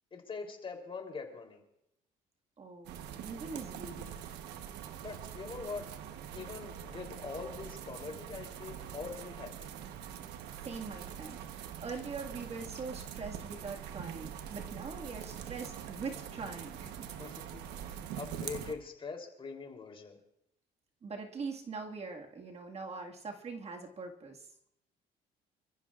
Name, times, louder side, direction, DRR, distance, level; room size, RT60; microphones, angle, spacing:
voice 1, 0.1-1.6 5.0-6.0 6.3-9.7 17.2-20.2, left 5 dB, 30° left, 3 dB, 3.5 m, -43 dB
voice 2, 2.6-4.2 10.5-17.1 21.0-24.5, right 4 dB, 40° right, 1 dB, 1.9 m, -43 dB
sound 1, 2.9-18.8, right 9 dB, 85° right, 1.1 m, -44 dB
28.0 x 14.5 x 2.5 m, 0.79 s
cardioid pair, 110°, 17 cm